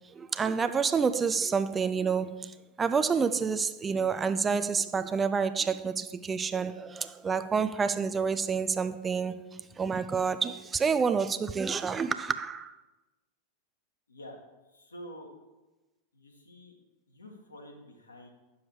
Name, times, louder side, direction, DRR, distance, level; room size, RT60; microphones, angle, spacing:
voice 1, 0.2-9.4 9.8-12.7, right 5 dB, 20° right, 0.4 m, -28 dB
voice 2, 14.7-15.3 16.1-16.8 17.1-18.3, equal, 75° left, 1.7 m, -48 dB
9.1 x 7.1 x 4.8 m
figure-of-eight pair, 90°, 0 cm